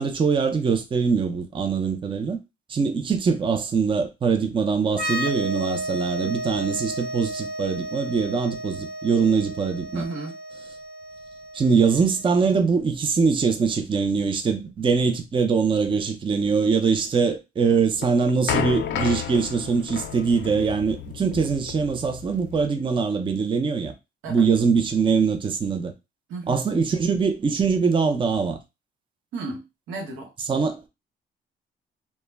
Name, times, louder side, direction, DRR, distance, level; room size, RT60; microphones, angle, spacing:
voice 1, 0.0-2.4 2.7-10.0 11.5-23.9 24.3-25.9 26.5-28.6 30.5-30.9, right 5 dB, 25° right, 0.4 m, -23 dB
sound 1, 4.9-12.4, right 1 dB, 55° right, 0.8 m, -33 dB
voice 2, 9.9-10.3 24.2-24.5 26.3-26.7 29.3-30.3, right 3 dB, 90° right, 0.9 m, -34 dB
sound 2, 17.7-22.7, left 9 dB, 65° left, 0.4 m, -32 dB
2.1 x 2.1 x 3.2 m
cardioid pair, 90°, 20 cm